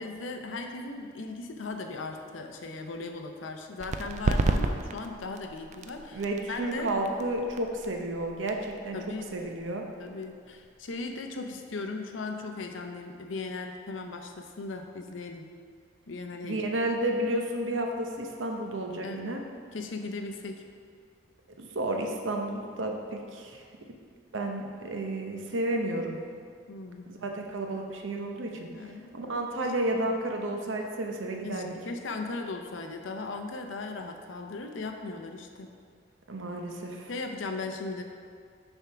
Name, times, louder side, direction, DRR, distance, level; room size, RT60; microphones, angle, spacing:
voice 1, 0.0-6.2 6.5-6.9 8.9-9.4 10.0-15.5 16.1-16.6 19.0-19.4 19.7-20.6 26.7-27.0 28.7-29.3 29.6-29.7 31.4-35.7 37.1-38.0, left 3 dB, 75° left, 4 dB, 0.6 m, -37 dB
sound 1, 3.8-11.1, right 2 dB, 40° right, 0.4 m, -33 dB
voice 2, 6.1-9.0 9.3-9.8 16.4-19.4 21.6-23.6 24.3-26.2 27.1-31.7 36.3-37.1, right 1 dB, 75° right, 2 dB, 0.8 m, -32 dB
7.0 x 3.6 x 5.7 m, 2.1 s
head